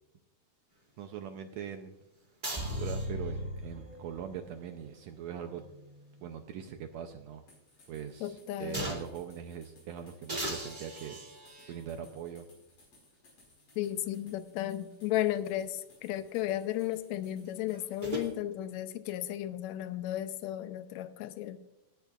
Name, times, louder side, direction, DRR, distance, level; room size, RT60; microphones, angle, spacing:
voice 1, 1.0-2.0 2.5-5.6 6.2-7.4 7.9-11.2 11.7-12.5, right 8 dB, 75° right, 6 dB, 1.8 m, -41 dB
sound 1, 2.4-3.4 5.1-6.7 7.1-7.2 8.7-9.2 10.3-11.8 12.8-12.9 17.4-18.3, right 1 dB, 20° right, 2.0 m, -40 dB
sound 2, 2.6-4.7 5.1-5.2, left 1 dB, 35° right, 0.5 m, -38 dB
sound 3, 7.5-18.3, left 2 dB, 60° left, 5.8 m, -62 dB
voice 2, 8.2-8.9 13.8-21.6, left 13 dB, 75° left, 11 dB, 1.8 m, -34 dB
18.0 x 10.5 x 2.5 m, 0.93 s
omnidirectional pair, 3.4 m